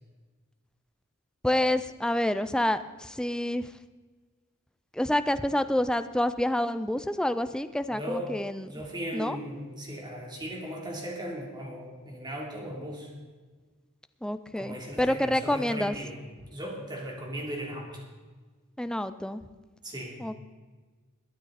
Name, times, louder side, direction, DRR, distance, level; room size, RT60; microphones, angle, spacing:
voice 1, 1.4-3.7 4.9-8.7 9.1-9.4 14.2-16.0 18.8-19.4 20.2-20.3, left 1 dB, 5° left, 11 dB, 0.5 m, -28 dB
voice 2, 7.9-8.3 8.7-13.1 14.6-16.2 16.5-18.0 19.8-20.4, equal, 20° right, -2 dB, 3.2 m, -37 dB
21.5 x 9.2 x 4.1 m, 1.4 s
head